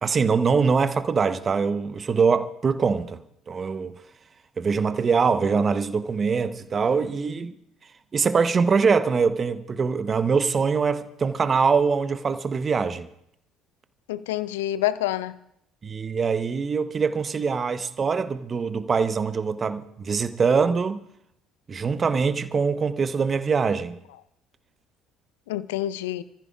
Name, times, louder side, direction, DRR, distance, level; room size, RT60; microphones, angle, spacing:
voice 1, 0.0-3.2 3.5-3.9 4.6-7.5 8.1-13.1 15.8-21.0 21.7-24.0, right 5 dB, 35° right, 0.9 m, -23 dB
voice 2, 14.1-15.4 25.5-26.2, left 14 dB, 75° left, 0.5 m, -27 dB
28.5 x 14.5 x 2.4 m
figure-of-eight pair, 55°, 0 cm